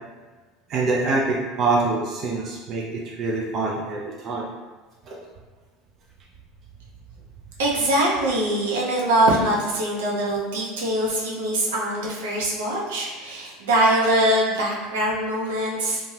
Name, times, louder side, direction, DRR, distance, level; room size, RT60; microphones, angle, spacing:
voice 1, 0.7-4.5 5.1-5.2, right 3 dB, 45° right, -2 dB, 0.4 m, -25 dB
voice 2, 7.6-16.0, right 1 dB, 80° right, -3 dB, 0.7 m, -23 dB
2.7 x 2.2 x 3.2 m, 1.3 s
hypercardioid pair, 90°, 0 cm